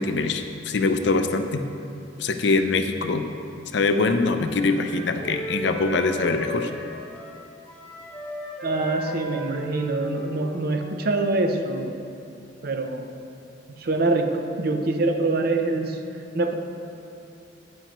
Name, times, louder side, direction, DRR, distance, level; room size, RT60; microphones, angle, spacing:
voice 1, 0.0-1.6 2.2-3.3 3.7-6.7, left 3 dB, 65° left, 7 dB, 0.5 m, -23 dB
Wind instrument woodwind instrument, 4.3-11.5, equal, 10° left, 1.2 m, -36 dB
voice 2, 8.6-12.0 12.6-13.1 13.8-16.0 16.3-16.5, right 2 dB, 55° right, 5 dB, 0.6 m, -25 dB
9.1 x 9.0 x 3.0 m, 2.6 s
head